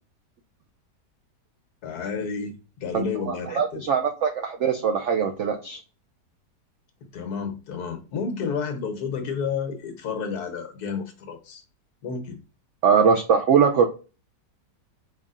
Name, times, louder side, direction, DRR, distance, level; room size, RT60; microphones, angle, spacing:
voice 1, 1.8-3.8 7.1-11.6 12.0-12.4, left 5 dB, 65° left, 1.4 m, -31 dB
voice 2, 2.9-5.8 12.8-13.9, right 6 dB, 80° right, 0.6 m, -21 dB
5.2 x 3.4 x 2.4 m
omnidirectional pair, 1.9 m